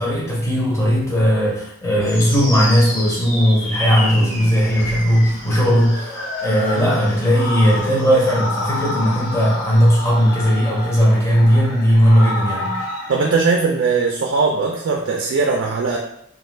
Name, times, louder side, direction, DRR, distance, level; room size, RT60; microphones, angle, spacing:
voice 1, 0.0-6.1 6.4-12.8, equal, 15° left, -5 dB, 0.6 m, -17 dB
sound 1, 2.0-13.3, left 1 dB, 80° left, 0.8 m, -29 dB
voice 2, 4.2-4.7 6.8-7.0 13.1-16.0, right 4 dB, 75° right, 0 dB, 0.3 m, -20 dB
2.3 x 2.3 x 3.2 m, 0.73 s
head